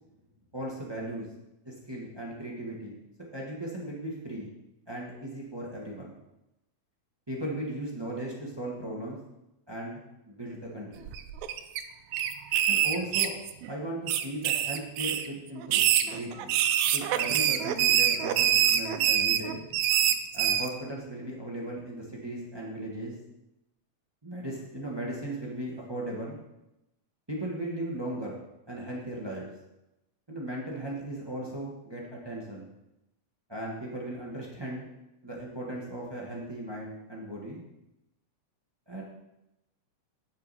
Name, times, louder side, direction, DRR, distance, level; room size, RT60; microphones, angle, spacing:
voice 1, 0.5-1.3 1.6-3.0 3.3-4.5 4.9-6.1 7.3-9.2 9.7-10.0 10.3-11.1 12.7-13.3 13.7-16.5 16.8-19.6 20.3-23.1 24.2-26.4 27.3-28.4 28.7-29.5 30.3-32.7 33.5-34.9 35.2-37.6 38.9-39.0, right 1 dB, 35° right, -3 dB, 0.4 m, -37 dB
sound 1, 11.1-11.8 12.1-13.7 14.1-15.3 15.6-20.7, right 10 dB, 80° right, 1.9 m, -25 dB
9.6 x 7.4 x 4.1 m, 0.92 s
omnidirectional pair, 3.4 m